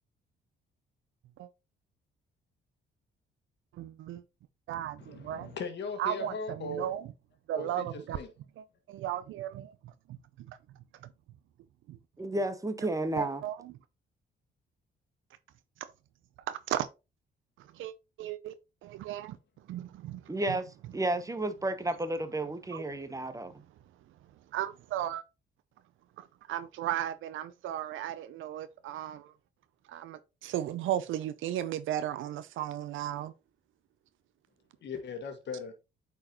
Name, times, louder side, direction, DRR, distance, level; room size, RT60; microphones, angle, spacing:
voice 1, 3.8-4.2 4.7-5.5 6.0-7.1 7.5-8.2 8.6-9.7 10.5-10.6 11.9-12.0 13.2-13.5 16.5-16.9 17.8-17.9 18.2-18.5 18.8-19.4 19.7-20.2 22.7-22.8 24.5-25.2 26.2-29.3 29.9-33.3, right 11 dB, 80° right, 0.6 m, -35 dB
voice 2, 5.0-6.9 7.5-8.3 34.8-35.7, left 3 dB, 60° left, 1.6 m, -39 dB
voice 3, 12.2-13.4 20.3-23.6, right 2 dB, 15° right, 1.0 m, -32 dB
8.7 x 4.7 x 2.9 m
cardioid pair, 90°, 20 cm